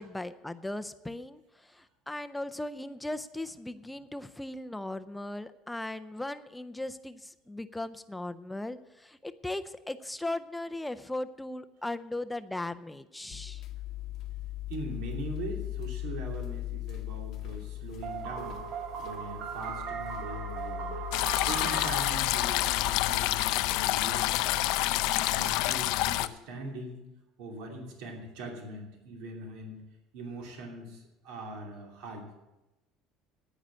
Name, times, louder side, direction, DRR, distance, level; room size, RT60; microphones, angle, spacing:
voice 1, 0.0-13.6, left 1 dB, 5° left, 11 dB, 0.4 m, -38 dB
sound 1, 13.3-24.9, left 15 dB, 45° left, 0.8 m, -40 dB
voice 2, 14.7-18.6 19.0-21.0 21.5-24.6 25.0-27.0 27.4-29.8 30.1-32.3, right 2 dB, 75° right, 1 dB, 2.8 m, -41 dB
sound 2, 18.0-23.9, right 7 dB, 45° right, 1.0 m, -39 dB
sound 3, 21.1-26.3, left 16 dB, 75° left, 0.5 m, -28 dB
10.0 x 9.3 x 7.4 m, 0.99 s
cardioid pair, 165°, 0 cm